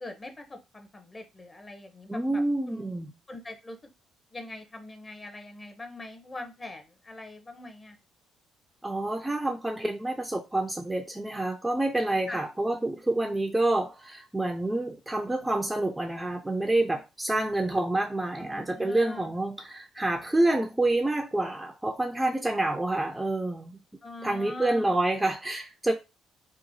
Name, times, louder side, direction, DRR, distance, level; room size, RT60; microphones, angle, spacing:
voice 1, 0.0-2.4 2.7-2.8 3.3-3.8 4.3-8.0 12.3-12.4 18.4-19.3 24.0-24.9, left 2 dB, 25° left, 0.8 m, -42 dB
voice 2, 2.1-3.1 8.8-23.8 24.2-25.9, right 2 dB, 10° right, 0.5 m, -28 dB
3.0 x 2.1 x 2.7 m
figure-of-eight pair, 45°, 0 cm